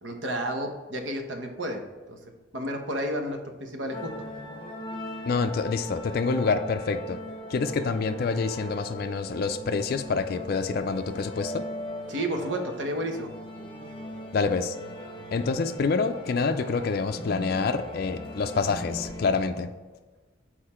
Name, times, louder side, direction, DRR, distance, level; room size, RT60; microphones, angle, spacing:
voice 1, 0.0-1.8 2.1-2.2 2.5-4.1 12.1-13.3, right 1 dB, 70° right, 4 dB, 1.0 m, -31 dB
sound 1, 3.9-19.4, equal, 25° left, 0.9 m, -39 dB
voice 2, 5.3-7.2 7.5-11.7 14.3-14.8 15.3-19.7, left 4 dB, 50° left, 7 dB, 0.4 m, -27 dB
6.7 x 4.4 x 4.3 m, 1.3 s
head